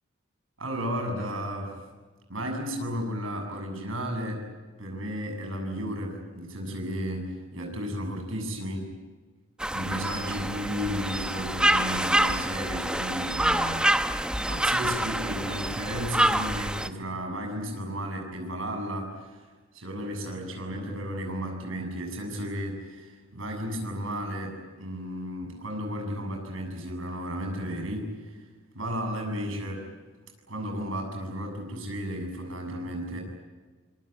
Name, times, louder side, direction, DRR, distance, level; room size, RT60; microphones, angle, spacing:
voice 1, 0.6-1.8 2.3-4.4 4.8-8.9 9.7-14.1 14.5-19.5 19.7-28.4 28.7-29.9 30.5-33.2, equal, 85° right, 3 dB, 7.4 m, -33 dB
sound 1, 9.6-16.9, right 1 dB, 5° right, 0.8 m, -26 dB
25.5 x 23.0 x 9.2 m, 1.4 s
head